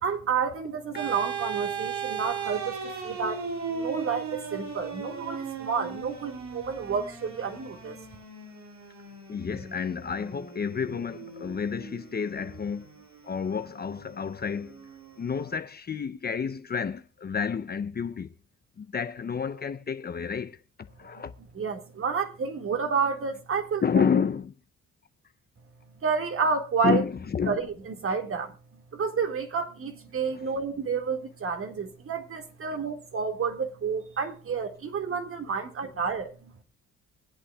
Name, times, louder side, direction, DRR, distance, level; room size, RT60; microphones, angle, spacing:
voice 1, 0.0-3.4 3.7-8.0 21.6-24.0 26.0-27.0 27.5-28.5 28.9-36.5, right 5 dB, 45° right, 1.9 m, -30 dB
sound 1, 0.9-15.5, right 6 dB, 70° right, 2.4 m, -38 dB
voice 2, 9.3-12.9 13.2-14.8 15.2-18.3 18.8-20.6 21.0-21.3 23.8-24.5 26.8-27.6, left 6 dB, 30° left, 0.6 m, -30 dB
24.0 x 8.3 x 2.3 m
cardioid pair, 90°, 30 cm